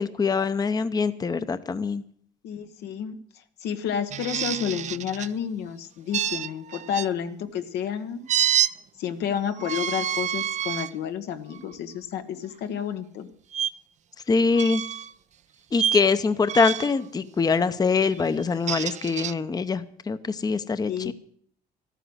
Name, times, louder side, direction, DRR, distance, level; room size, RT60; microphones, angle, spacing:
voice 1, 0.0-2.0 14.3-14.8 15.7-21.1, left 4 dB, 25° left, 12 dB, 0.7 m, -24 dB
voice 2, 2.4-8.2 9.0-13.3 20.9-21.1, left 8 dB, 80° left, 8 dB, 1.2 m, -30 dB
sound 1, 4.1-5.3 6.1-7.1 8.3-8.7 9.6-10.9 11.5-11.7 13.5-13.7 14.5-15.1 15.7-16.1 16.5-17.0 18.4-19.3, right 9 dB, 45° right, 0.4 m, -27 dB
13.0 x 9.2 x 7.8 m, 0.62 s
cardioid pair, 95°, 17 cm